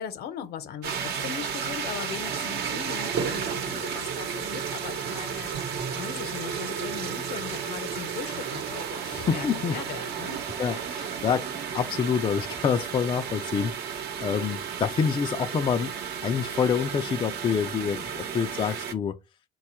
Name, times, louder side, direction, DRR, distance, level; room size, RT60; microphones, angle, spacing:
voice 1, 0.0-10.4, left 8 dB, 70° left, 0.8 m, -39 dB
sound 1, 0.8-18.9, right 7 dB, 75° right, 0.9 m, -33 dB
voice 2, 9.0-9.8 10.6-11.5 11.7-15.9 16.2-19.2, left 7 dB, 30° left, 0.4 m, -27 dB
4.3 x 2.3 x 4.3 m
cardioid pair, 110°, 17 cm